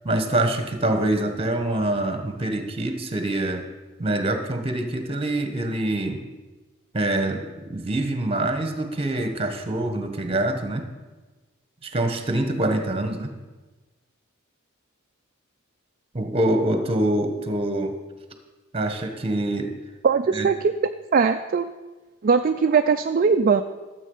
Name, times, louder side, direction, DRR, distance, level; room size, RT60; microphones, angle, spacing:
voice 1, 0.0-3.7 4.0-6.2 6.9-10.8 11.8-13.3 16.1-17.9 18.7-19.7 20.3-20.5, right 1 dB, 25° right, 6 dB, 1.2 m, -25 dB
voice 2, 20.0-20.5 21.1-21.7 22.2-23.6, right 5 dB, 40° right, 6 dB, 0.4 m, -20 dB
13.5 x 7.5 x 5.5 m, 1.2 s
head